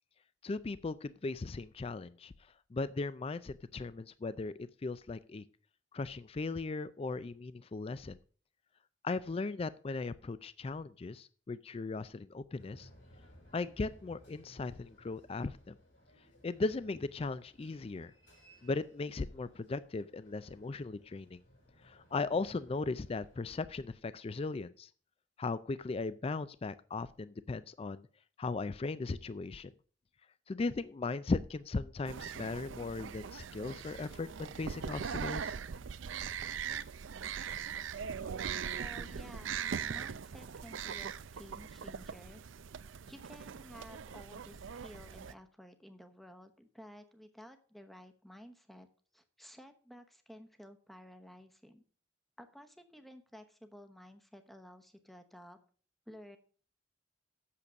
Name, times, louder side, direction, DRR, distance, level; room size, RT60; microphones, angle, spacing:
voice 1, 0.4-2.3 2.7-4.5 4.8-5.4 5.9-8.2 9.0-12.9 13.5-15.7 16.4-18.1 18.6-21.4 21.8-24.9 25.4-28.0 28.4-29.7 30.5-35.5, left 3 dB, 30° left, 16 dB, 0.4 m, -37 dB
sound 1, 12.6-23.8, equal, 75° left, 5.7 m, -61 dB
sound 2, 32.1-45.3, right 7 dB, 85° right, 0.5 m, -41 dB
voice 2, 38.7-39.6 39.9-42.4 43.1-48.9 49.1-51.8 52.4-55.6 56.1-56.4, equal, ahead, 7 dB, 0.9 m, -53 dB
8.4 x 6.8 x 6.3 m, 0.43 s
head